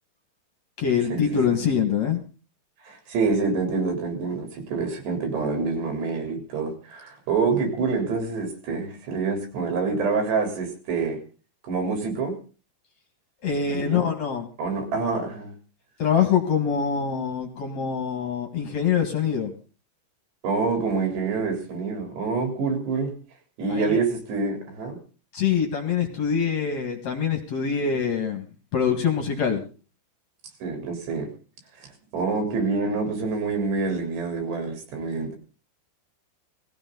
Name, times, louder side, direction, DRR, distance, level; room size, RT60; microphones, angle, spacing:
voice 1, 0.8-2.2 13.4-14.5 16.0-19.5 23.7-24.0 25.3-29.6, left 7 dB, 50° left, 4 dB, 2.6 m, -24 dB
voice 2, 2.8-11.2 11.7-12.3 13.7-14.1 14.6-15.5 20.4-23.1 23.6-25.0 30.6-31.3 31.8-35.3, right 4 dB, 80° right, 3 dB, 5.8 m, -26 dB
19.0 x 15.5 x 4.0 m, 0.36 s
omnidirectional pair, 4.8 m